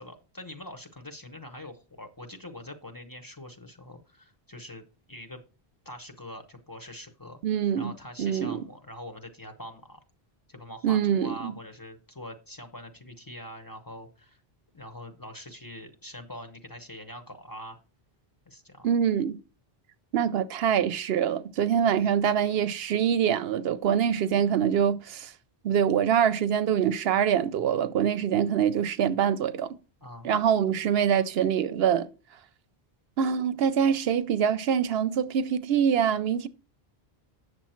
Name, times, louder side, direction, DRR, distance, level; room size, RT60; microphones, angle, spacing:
voice 1, 0.0-5.4 5.8-7.4 7.8-10.0 10.5-14.4 14.7-17.8 18.5-18.9 22.0-22.1 30.0-30.3, left 1 dB, 20° left, 0.9 m, -43 dB
voice 2, 7.4-7.9 8.2-8.7 10.8-11.5 18.8-19.4 20.1-25.3 25.6-29.8 30.2-32.1 33.2-36.5, right 8 dB, 75° right, 0.8 m, -24 dB
8.3 x 6.6 x 4.3 m
omnidirectional pair, 1.0 m